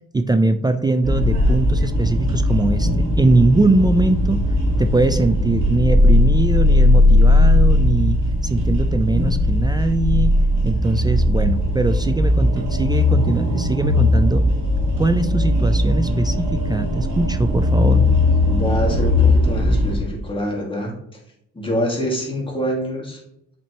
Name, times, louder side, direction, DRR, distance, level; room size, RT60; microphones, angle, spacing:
voice 1, 0.1-4.4 4.8-10.3 10.6-14.5 14.9-18.1, right 2 dB, 15° right, 10 dB, 0.3 m, -21 dB
sound 1, 1.0-19.9, left 1 dB, 85° right, 1.8 m, -18 dB
voice 2, 18.4-20.9 21.5-23.2, equal, 15° left, -2 dB, 2.0 m, -25 dB
7.2 x 4.4 x 2.9 m, 0.77 s
cardioid pair, 90°, 30 cm